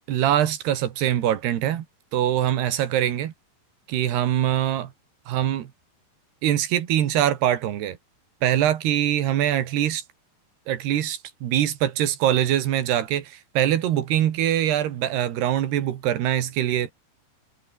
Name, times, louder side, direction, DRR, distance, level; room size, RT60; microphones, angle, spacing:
voice 1, 0.1-1.9 2.1-3.3 3.9-4.9 5.3-5.7 6.4-8.0 8.4-10.0 10.7-16.9, right 11 dB, 70° right, 3.6 m, -23 dB
omnidirectional pair, 5.1 m